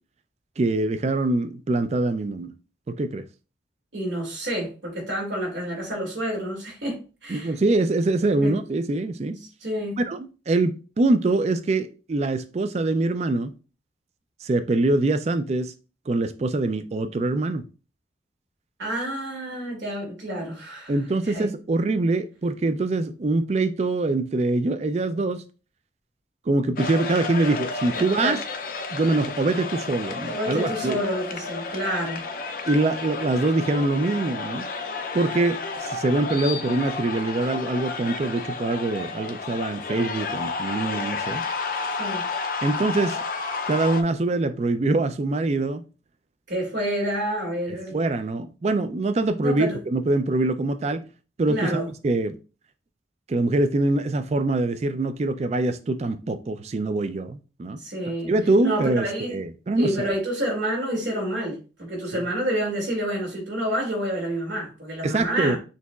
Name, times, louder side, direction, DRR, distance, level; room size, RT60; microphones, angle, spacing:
voice 1, 0.6-2.5 2.9-3.2 7.3-9.4 10.0-13.5 14.4-15.7 16.1-17.6 20.9-25.4 26.5-28.4 28.9-31.0 32.6-34.7 35.1-41.4 42.6-43.2 43.7-45.8 47.7-51.0 51.4-52.3 53.3-57.8 58.3-60.1 65.0-65.6, right 2 dB, 35° right, 0.3 m, -24 dB
voice 2, 3.9-7.5 8.2-8.5 9.6-10.0 18.8-20.9 21.2-21.5 28.0-28.4 30.3-32.2 42.0-42.3 46.5-48.0 49.4-49.8 51.5-51.9 57.8-58.3 58.6-59.3 59.8-65.6, right 1 dB, 85° right, 2.3 m, -29 dB
sound 1, 26.8-44.0, left 4 dB, 50° left, 0.5 m, -31 dB
6.4 x 2.9 x 2.3 m
head